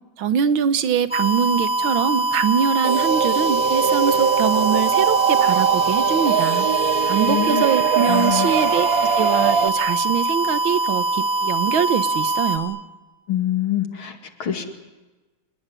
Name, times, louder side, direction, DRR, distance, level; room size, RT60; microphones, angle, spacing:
voice 1, 0.2-6.7 7.0-8.9 9.1-12.8, right 8 dB, 70° right, 12 dB, 2.0 m, -23 dB
sound 1, 1.1-12.6, right 2 dB, 5° left, 3.4 m, -23 dB
sound 2, 2.8-9.7, right 8 dB, 50° right, 1.4 m, -22 dB
voice 2, 7.3-7.6 8.1-8.5 13.3-14.7, left 11 dB, 75° left, 7 dB, 3.1 m, -25 dB
28.0 x 19.5 x 9.9 m, 1.2 s
omnidirectional pair, 2.3 m